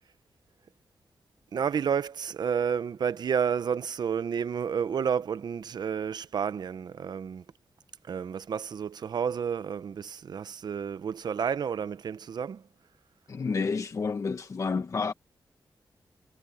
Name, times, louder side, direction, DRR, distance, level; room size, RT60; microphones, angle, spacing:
voice 1, 1.5-7.4 8.1-12.6, right 7 dB, 60° right, 0.8 m, -30 dB
voice 2, 13.3-15.1, left 4 dB, 40° left, 1.2 m, -30 dB
wide cardioid pair, 145°, 8 cm